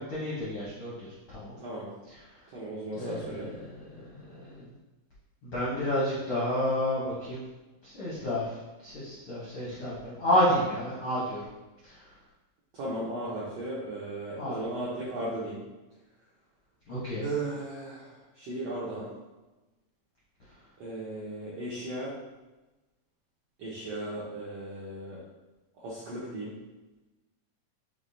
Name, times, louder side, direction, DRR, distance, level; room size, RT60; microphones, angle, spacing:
voice 1, 0.1-1.5 3.0-4.6 5.4-7.4 7.8-8.5 8.8-11.4 11.8-11.9 14.4-14.6 16.9-17.3, left 1 dB, 75° left, -8 dB, 1.2 m, -30 dB
voice 2, 1.6-1.9 2.5-3.5 12.7-15.6 17.2-19.1 20.8-22.1 23.6-25.2 25.7-26.5, right 2 dB, 80° right, -8 dB, 1.4 m, -36 dB
6.1 x 3.2 x 2.7 m, 1.1 s
omnidirectional pair, 4.0 m